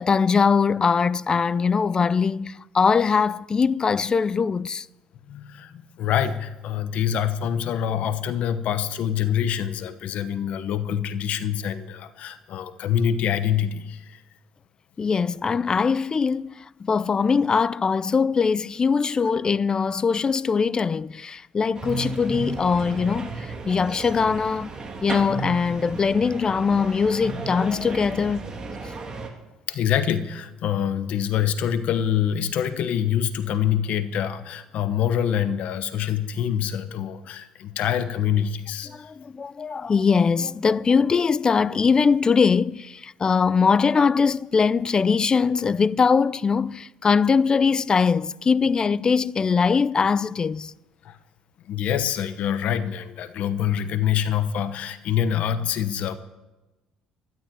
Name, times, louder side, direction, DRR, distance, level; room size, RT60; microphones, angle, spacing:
voice 1, 0.0-4.9 15.0-24.7 25.0-28.4 38.9-50.7, left 5 dB, 30° left, 0.5 m, -21 dB
voice 2, 5.3-14.2 29.7-39.1 51.0-51.2 51.7-56.2, left 9 dB, 65° left, 1.1 m, -25 dB
sound 1, 21.7-29.3, right 3 dB, 30° right, 2.9 m, -34 dB
13.0 x 12.0 x 8.9 m
supercardioid pair, 90°, 2 cm